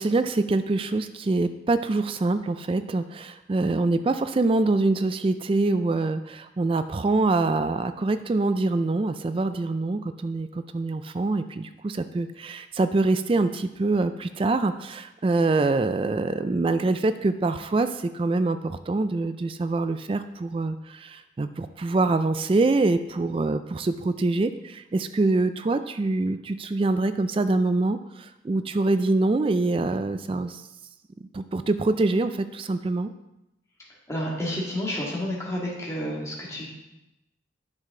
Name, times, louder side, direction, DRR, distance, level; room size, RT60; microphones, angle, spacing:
voice 1, 0.0-30.6 31.3-33.1, right 2 dB, 30° right, 11 dB, 0.3 m, -25 dB
voice 2, 34.1-36.7, left 1 dB, 15° left, -4 dB, 2.1 m, -30 dB
9.6 x 6.5 x 3.8 m, 0.93 s
head